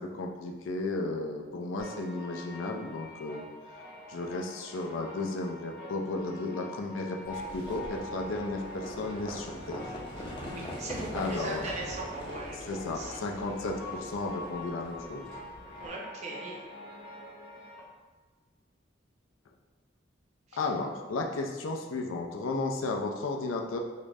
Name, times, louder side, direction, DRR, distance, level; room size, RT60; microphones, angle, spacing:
voice 1, 0.0-3.4 4.1-9.8 11.1-11.6 12.7-15.2 20.6-23.8, left 2 dB, 80° left, 2 dB, 0.4 m, -34 dB
sound 1, 1.8-17.8, left 1 dB, 55° left, 0.8 m, -45 dB
Livestock farm animals working animals, 7.2-15.9, equal, 25° left, 0.5 m, -42 dB
voice 2, 10.2-13.2 15.8-16.6 20.5-20.6, right 2 dB, 35° right, -3 dB, 0.5 m, -40 dB
3.7 x 2.1 x 3.4 m, 1.3 s
head